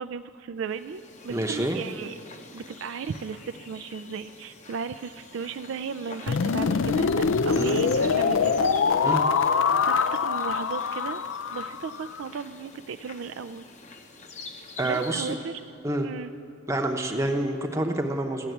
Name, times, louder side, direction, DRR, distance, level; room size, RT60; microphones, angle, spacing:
voice 1, 0.0-2.1 2.5-8.7 9.0-9.1 9.8-11.2 11.5-13.7 14.8-15.7 16.0-16.3, right 6 dB, 65° right, 12 dB, 0.3 m, -36 dB
sound 1, 0.6-15.4, left 3 dB, 35° left, 0.7 m, -46 dB
voice 2, 1.3-1.8 7.5-7.8 9.0-9.3 14.8-15.3 15.8-16.1 16.7-18.5, right 1 dB, 15° right, 4 dB, 0.8 m, -27 dB
sound 2, 6.3-12.2, left 5 dB, 65° left, 0.4 m, -24 dB
15.0 x 7.2 x 9.2 m, 2.4 s
head